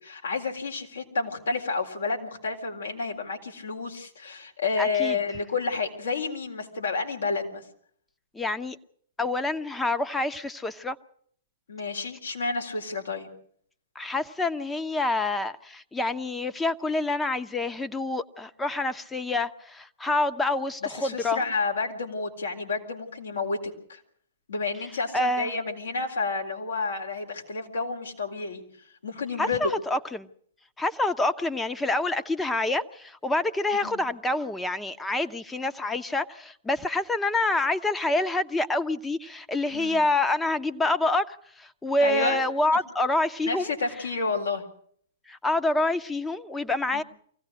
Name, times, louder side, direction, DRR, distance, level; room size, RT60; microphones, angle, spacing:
voice 1, 0.0-7.6 11.7-13.3 20.8-24.0 24.5-28.6 29.0-29.6 33.8-34.0 39.7-40.0 42.0-42.4 43.5-44.6 46.9-47.0, left 4 dB, 85° left, 2 dB, 4.2 m, -30 dB
voice 2, 4.8-5.2 8.3-8.8 9.2-11.0 13.9-21.4 25.1-25.5 29.4-30.3 30.8-43.7 45.3-47.0, left 2 dB, 10° left, 10 dB, 0.9 m, -27 dB
24.5 x 16.5 x 6.5 m, 0.62 s
hypercardioid pair, 120°, 0 cm